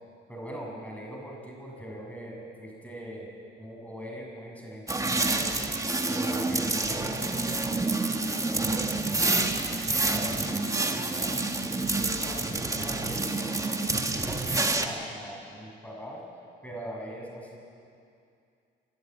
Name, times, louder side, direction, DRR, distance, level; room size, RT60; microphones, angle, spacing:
voice 1, 0.3-3.3 3.6-5.7 6.1-11.4 11.9-16.2 16.6-17.6, right 1 dB, 5° left, -2 dB, 6.5 m, -41 dB
sound 1, 4.9-14.9, right 2 dB, 15° right, 1.6 m, -28 dB
28.5 x 11.0 x 9.0 m, 2.4 s
cardioid pair, 90°, 20 cm